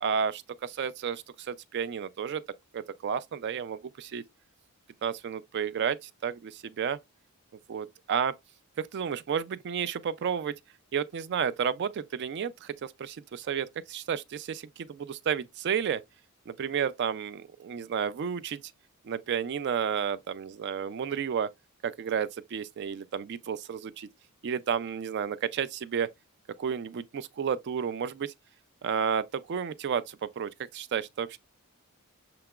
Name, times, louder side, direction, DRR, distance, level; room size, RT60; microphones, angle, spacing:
voice 1, 0.0-2.4 2.7-4.2 5.0-7.0 7.7-8.3 8.8-10.5 10.9-16.0 16.5-18.6 19.0-21.5 21.8-24.1 24.4-26.1 26.6-28.3 28.8-31.4, right 7 dB, 50° right, 0.3 m, -31 dB
6.8 x 2.9 x 2.3 m
head